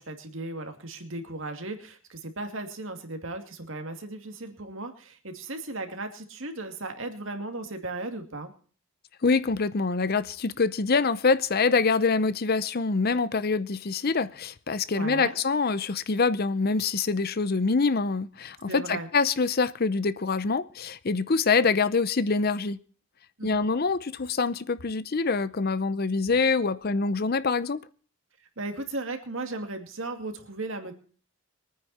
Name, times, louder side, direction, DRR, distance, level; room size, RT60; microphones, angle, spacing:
voice 1, 0.0-8.5 14.9-15.3 18.6-19.1 23.4-23.7 28.6-30.9, right 2 dB, 65° right, 2.5 m, -36 dB
voice 2, 9.2-22.8 23.4-27.8, left 4 dB, 45° left, 0.7 m, -25 dB
23.0 x 9.6 x 4.2 m
head